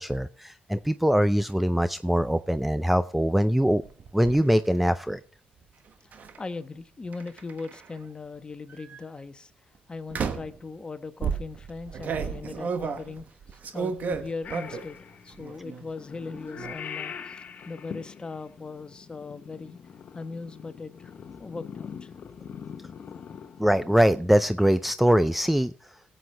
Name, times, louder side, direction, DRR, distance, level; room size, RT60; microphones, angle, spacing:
voice 1, 0.0-3.8 4.1-5.2 23.6-25.7, equal, 5° right, 13 dB, 0.5 m, -22 dB
sound 1, 3.8-4.4 6.1-6.4 7.1-8.0 8.7-9.0 10.1-10.6 11.2-15.0 15.3-15.9 16.1-16.7, right 6 dB, 60° right, 1.2 m, -33 dB
voice 2, 6.0-9.5 9.9-15.0 15.2-19.8 20.1-21.1 21.4-22.1, left 4 dB, 30° left, 10 dB, 1.2 m, -39 dB
Purr / Meow, 14.4-24.4, left 7 dB, 55° left, 1.0 m, -43 dB
17.0 x 8.1 x 3.4 m, 0.39 s
supercardioid pair, 65°, 3 cm